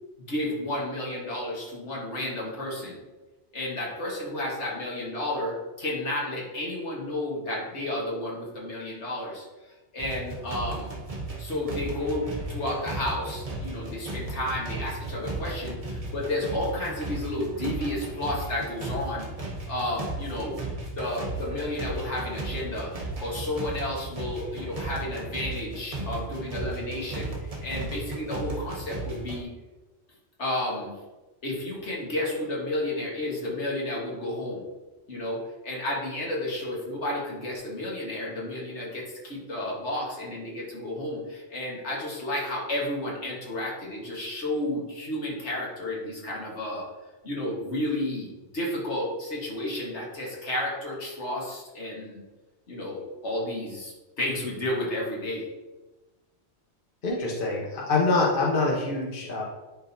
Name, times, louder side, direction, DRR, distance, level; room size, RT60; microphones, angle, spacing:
voice 1, 0.2-3.0 3.5-9.4 9.9-10.9 11.4-19.3 19.7-20.6 20.9-22.9 23.2-29.5 30.4-30.9 31.4-34.7 35.1-46.9 47.2-52.2 52.7-55.4, left 1 dB, 75° left, -3 dB, 1.8 m, -32 dB
sound 1, 10.0-29.4, right 2 dB, 35° right, 1.0 m, -35 dB
voice 2, 57.0-59.4, left 3 dB, 50° left, -3 dB, 1.2 m, -25 dB
10.5 x 4.0 x 2.7 m, 1.2 s
omnidirectional pair, 1.2 m